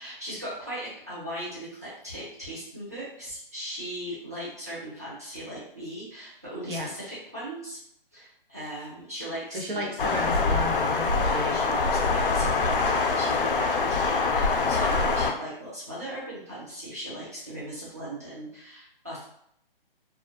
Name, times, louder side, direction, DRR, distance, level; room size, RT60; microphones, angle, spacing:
voice 1, 0.0-7.8 8.1-9.9 11.5-19.2, right 1 dB, 15° right, -9 dB, 0.5 m, -38 dB
voice 2, 9.5-11.6, equal, 60° right, 0 dB, 0.8 m, -33 dB
sound 1, 10.0-15.3, left 4 dB, 65° left, 0.4 m, -24 dB
2.3 x 2.2 x 2.7 m, 0.72 s
hypercardioid pair, 175°, 29 cm